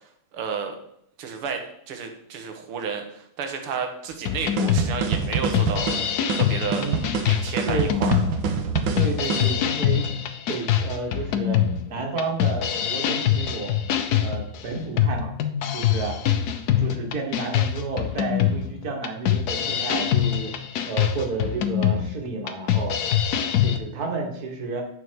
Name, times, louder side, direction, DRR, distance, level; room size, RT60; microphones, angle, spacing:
voice 1, 0.3-0.8 1.2-1.6 1.9-5.9 6.3-6.9 7.3-8.2, right 6 dB, 90° right, 5 dB, 2.1 m, -31 dB
sound 1, 4.2-23.8, left 10 dB, 70° left, 0.9 m, -24 dB
sound 2, 4.6-9.5, right 5 dB, 70° right, 1.6 m, -26 dB
voice 2, 8.9-10.1 10.5-13.8 14.2-15.3 15.7-16.2 16.8-20.5 20.9-23.0 23.6-24.8, right 3 dB, 45° right, 1 dB, 2.0 m, -31 dB
9.8 x 5.5 x 4.7 m, 0.71 s
omnidirectional pair, 2.4 m